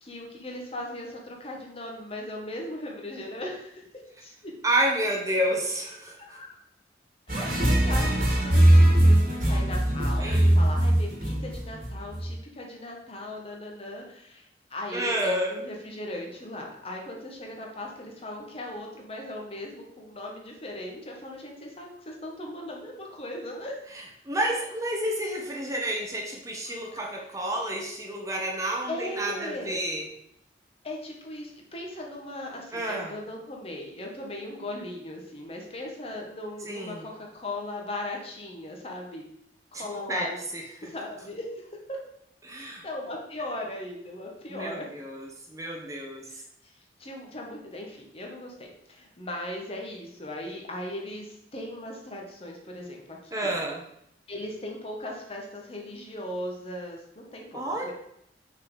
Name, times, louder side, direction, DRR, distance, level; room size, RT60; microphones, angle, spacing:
voice 1, 0.0-3.8 4.2-4.5 6.2-6.6 7.3-23.8 26.7-27.1 28.9-29.9 30.8-39.2 39.7-40.4 40.8-41.5 41.9-42.0 42.5-44.9 46.3-46.7 47.0-53.6 54.3-57.9, left 1 dB, 35° left, 0 dB, 1.2 m, -38 dB
voice 2, 4.6-6.2 7.3-7.6 10.2-10.5 14.9-15.7 24.3-30.0 32.7-33.1 36.7-37.1 39.7-39.8 40.1-40.3 40.8-40.9 42.4-42.8 44.5-46.3 53.3-53.8 57.5-57.9, right 1 dB, 20° right, 0 dB, 0.8 m, -30 dB
sound 1, 7.3-12.3, right 1 dB, 50° right, 1.7 m, -21 dB
5.7 x 4.0 x 4.8 m, 0.74 s
head